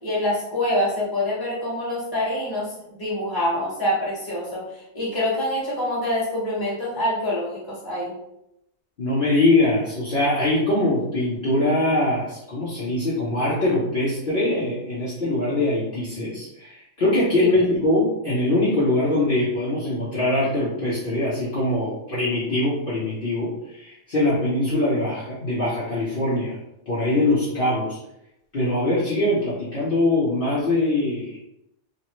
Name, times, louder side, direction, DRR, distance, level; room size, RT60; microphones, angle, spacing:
voice 1, 0.0-8.1 17.4-17.5, left 1 dB, 20° left, -7 dB, 1.2 m, -26 dB
voice 2, 9.0-26.6 26.9-28.0 28.5-31.4, left 2 dB, 50° left, -9 dB, 0.9 m, -22 dB
3.1 x 2.0 x 3.0 m, 0.83 s
omnidirectional pair, 1.3 m